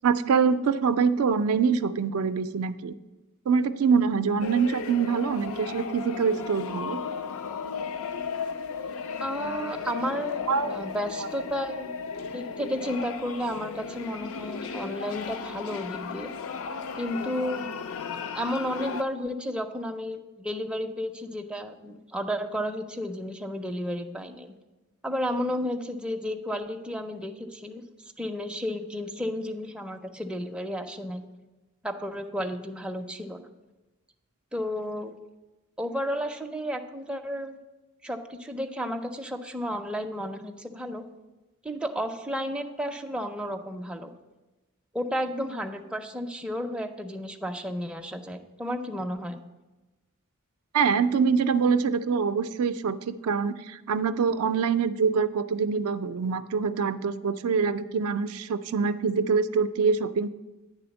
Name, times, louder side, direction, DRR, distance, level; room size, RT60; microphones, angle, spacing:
voice 1, 0.0-2.9 3.5-7.0 10.5-10.7 11.2-11.3 50.7-60.3, right 5 dB, 70° right, 11 dB, 0.4 m, -25 dB
sound 1, 4.4-19.0, left 5 dB, 65° left, 0.4 m, -35 dB
voice 2, 9.2-10.4 10.7-16.3 17.0-17.7 18.3-24.5 25.0-31.2 31.8-33.5 34.5-35.2 35.8-37.6 38.0-41.0 41.6-44.1 44.9-49.4, equal, 5° right, 3 dB, 0.4 m, -32 dB
9.3 x 3.5 x 6.9 m, 1.1 s
head